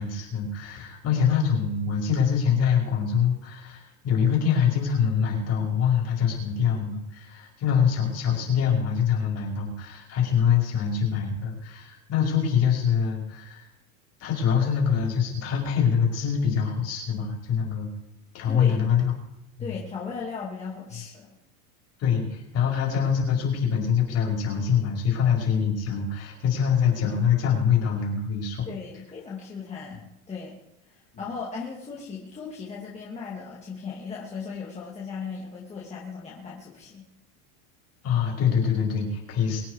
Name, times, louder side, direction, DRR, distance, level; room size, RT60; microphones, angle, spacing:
voice 1, 0.0-13.6 14.2-17.9 18.3-19.1 19.6-19.7 22.0-28.7 38.0-39.6, left 7 dB, 35° left, 0 dB, 5.2 m, -24 dB
voice 2, 19.6-21.3 28.7-30.6 30.9-37.1, left 5 dB, 15° left, -5 dB, 2.8 m, -37 dB
24.0 x 9.2 x 4.9 m, 0.83 s
supercardioid pair, 145°, 42 cm